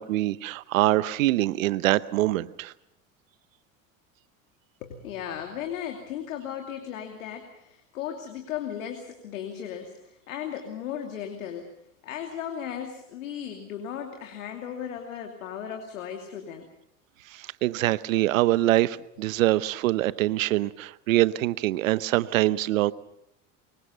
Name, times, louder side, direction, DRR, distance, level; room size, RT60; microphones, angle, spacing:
voice 1, 0.0-2.7 17.3-22.9, right 16 dB, 85° right, 17 dB, 0.9 m, -24 dB
voice 2, 4.8-11.7 12.0-16.7 19.3-19.4, left 9 dB, 85° left, 4 dB, 2.8 m, -36 dB
25.0 x 23.0 x 5.8 m, 0.78 s
hypercardioid pair, 85°, 39 cm